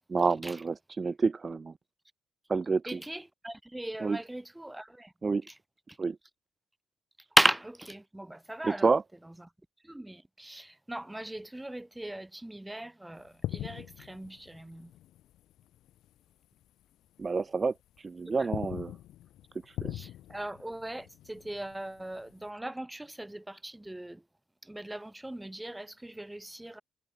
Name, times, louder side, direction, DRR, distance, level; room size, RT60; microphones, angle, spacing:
voice 1, 0.1-1.7 2.5-3.0 4.0-4.2 5.2-5.4 6.0-6.2 8.6-9.0 17.2-18.9 19.7-19.9, right 4 dB, 30° right, 2.3 m, -29 dB
voice 2, 2.9-5.1 7.4-8.9 9.9-14.9 18.3-18.5 19.9-24.2 24.6-26.8, right 1 dB, 10° right, 5.9 m, -35 dB
sound 1, 13.2-16.2 16.4-16.7 17.2-18.0 18.3-22.5, left 13 dB, 85° left, 4.2 m, -42 dB
cardioid pair, 90°, 0 cm